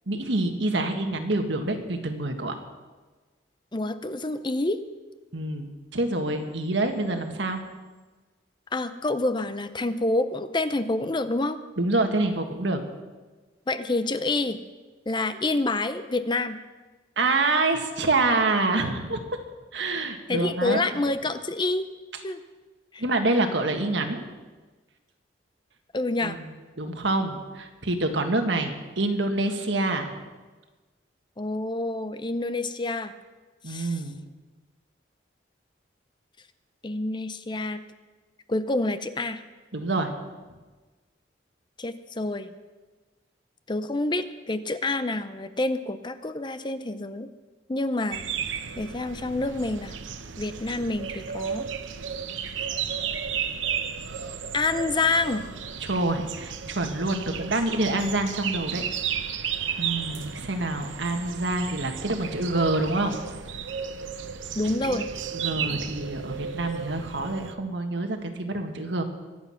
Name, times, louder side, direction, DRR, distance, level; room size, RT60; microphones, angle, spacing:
voice 1, 0.1-2.5 5.3-7.6 11.8-12.8 17.2-19.2 19.7-20.8 23.0-24.2 26.2-26.4 26.8-30.1 33.6-34.1 39.7-40.1 55.8-58.9 59.8-63.2 64.8-65.1 65.3-69.0, right 2 dB, 75° right, 5 dB, 1.7 m, -26 dB
voice 2, 3.7-4.8 8.7-11.6 13.7-14.6 15.1-16.6 20.3-21.9 22.2-22.4 22.9-23.0 25.9-26.4 31.4-33.1 33.7-34.0 36.8-37.8 38.5-39.4 41.8-42.5 43.7-47.3 47.7-48.2 48.8-50.0 50.4-51.7 54.5-55.4 64.6-65.1, left 2 dB, 25° left, 11 dB, 0.6 m, -27 dB
sound 1, 48.1-67.5, right 7 dB, 90° right, 0.9 m, -34 dB
23.5 x 8.3 x 5.8 m, 1.3 s
head